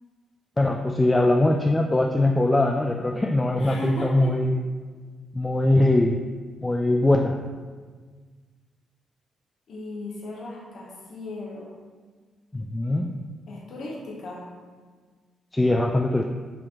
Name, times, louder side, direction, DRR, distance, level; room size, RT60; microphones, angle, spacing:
voice 1, 0.6-4.6 5.3-6.2 6.6-7.4 12.5-13.1 15.5-16.3, left 1 dB, 20° left, 2 dB, 0.3 m, -21 dB
voice 2, 3.6-4.3 9.7-11.7 13.5-14.5, left 1 dB, 65° left, -3 dB, 0.8 m, -36 dB
4.4 x 2.8 x 3.6 m, 1.5 s
hypercardioid pair, 45°, 0 cm